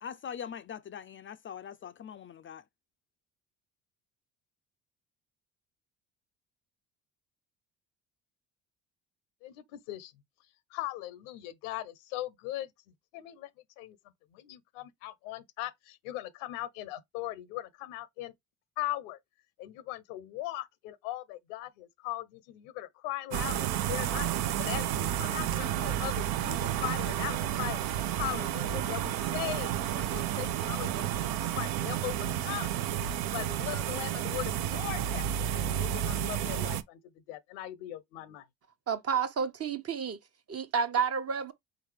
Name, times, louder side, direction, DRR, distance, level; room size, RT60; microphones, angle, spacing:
voice 1, 0.0-2.6, left 8 dB, 35° left, 0.4 m, -42 dB
voice 2, 9.4-10.1 10.7-12.7 13.1-13.5 13.8-14.0 14.3-18.3 18.8-19.2 19.6-27.8 28.1-32.2 32.4-32.7 33.3-37.0 37.3-38.5, left 15 dB, 85° left, 0.7 m, -39 dB
sound 1, 23.3-36.8, right 11 dB, 75° right, 0.7 m, -31 dB
voice 3, 38.9-40.2 40.5-41.5, right 6 dB, 40° right, 1.0 m, -30 dB
4.0 x 3.9 x 3.3 m
supercardioid pair, 70°, 37 cm